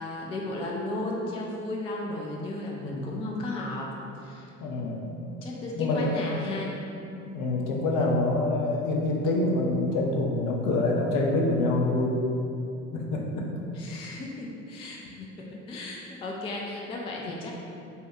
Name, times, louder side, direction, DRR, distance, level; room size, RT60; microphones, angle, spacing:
voice 1, 0.0-3.9 4.2-4.5 5.4-6.7 13.7-17.6, left 2 dB, 15° left, -2 dB, 0.3 m, -35 dB
voice 2, 2.8-3.2 4.6-5.1 5.8-6.1 7.3-12.2 12.9-13.5, left 2 dB, 55° left, 0 dB, 0.6 m, -26 dB
2.8 x 2.2 x 3.4 m, 2.7 s
hypercardioid pair, 65°, 38 cm